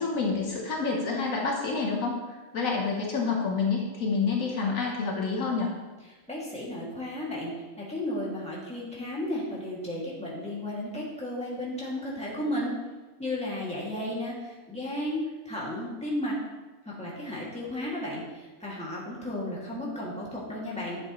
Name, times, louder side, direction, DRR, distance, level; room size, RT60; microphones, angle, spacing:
voice 1, 0.0-5.7, left 4 dB, 70° left, -1 dB, 1.5 m, -28 dB
voice 2, 6.3-7.5 7.8-12.7 13.2-16.3 16.8-18.2 18.6-21.0, left 1 dB, 5° left, -6 dB, 2.2 m, -33 dB
10.5 x 7.5 x 3.1 m, 1.2 s
omnidirectional pair, 1.5 m